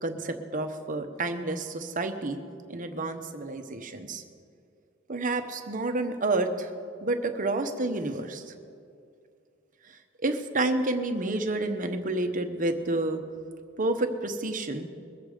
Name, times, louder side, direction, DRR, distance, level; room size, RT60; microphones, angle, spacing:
voice 1, 0.0-2.4 2.7-4.2 5.1-6.7 7.0-8.5 10.2-13.2 13.8-14.9, right 2 dB, 40° right, 7 dB, 1.0 m, -29 dB
22.0 x 8.0 x 5.0 m, 2.3 s
head